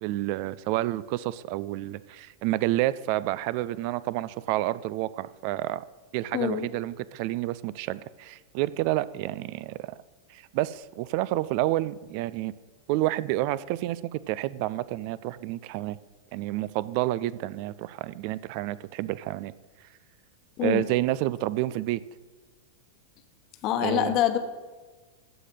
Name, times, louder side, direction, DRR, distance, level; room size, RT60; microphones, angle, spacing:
voice 1, 0.0-5.8 6.1-9.9 10.3-12.5 12.9-16.0 16.3-19.5 20.6-22.0 23.8-24.2, right 16 dB, 45° right, 18 dB, 0.4 m, -29 dB
voice 2, 6.3-6.7 20.6-20.8 23.6-24.4, left 11 dB, 40° left, 8 dB, 1.1 m, -25 dB
14.0 x 4.9 x 7.6 m, 1.3 s
figure-of-eight pair, 90°, 0 cm